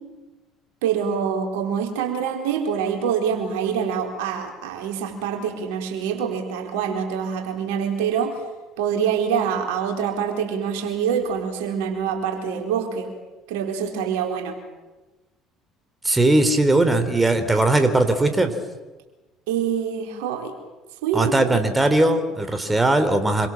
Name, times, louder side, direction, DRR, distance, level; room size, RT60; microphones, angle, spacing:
voice 1, 0.8-8.4 8.8-13.1 13.5-14.6 19.5-20.5 21.0-21.3, right 7 dB, 70° right, 3 dB, 4.4 m, -25 dB
voice 2, 16.0-18.5 21.1-23.5, right 2 dB, 15° right, 8 dB, 3.5 m, -19 dB
27.0 x 24.5 x 7.7 m, 1.1 s
figure-of-eight pair, 55°, 0 cm